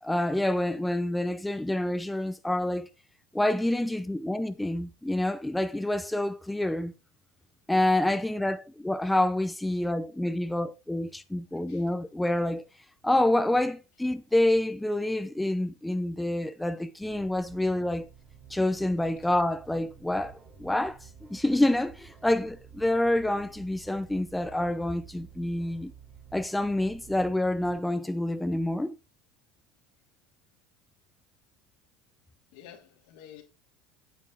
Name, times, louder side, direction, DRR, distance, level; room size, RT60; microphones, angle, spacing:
voice 1, 0.0-2.9 3.3-6.9 7.7-12.7 13.0-18.1 18.5-25.9 26.3-29.0, left 1 dB, 5° left, 0.7 m, -27 dB
sound 1, 17.0-27.8, right 7 dB, 35° right, 3.4 m, -51 dB
voice 2, 32.5-33.4, left 10 dB, 75° left, 2.8 m, -49 dB
8.8 x 7.4 x 3.9 m
hypercardioid pair, 90°, 0 cm